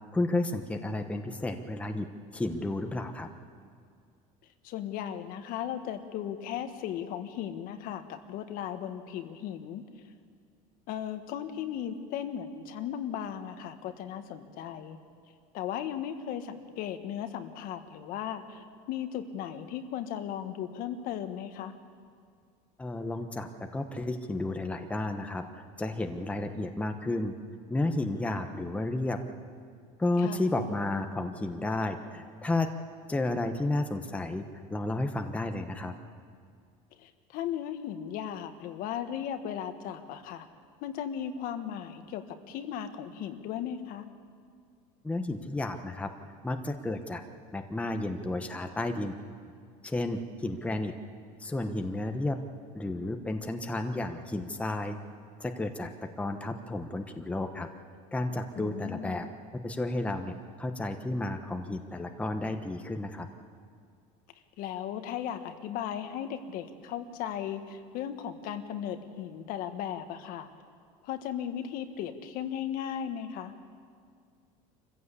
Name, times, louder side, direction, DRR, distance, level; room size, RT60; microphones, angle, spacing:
voice 1, 0.1-2.1 2.3-3.3 22.8-25.4 25.8-27.3 27.7-29.2 30.0-32.7 33.1-35.9 45.0-46.1 46.4-47.2 47.5-49.2 49.8-50.9 51.4-52.4 52.7-55.0 55.4-55.9 56.2-57.7 58.1-59.3 59.6-63.3, left 2 dB, 10° left, 5 dB, 1.1 m, -32 dB
voice 2, 4.6-9.8 10.9-15.0 15.5-21.7 30.2-30.5 37.0-40.5 40.8-44.0 58.6-59.2 64.6-70.5 71.0-73.5, left 9 dB, 60° left, 8 dB, 1.5 m, -36 dB
25.5 x 15.0 x 8.3 m, 2.2 s
cardioid pair, 140°, 17 cm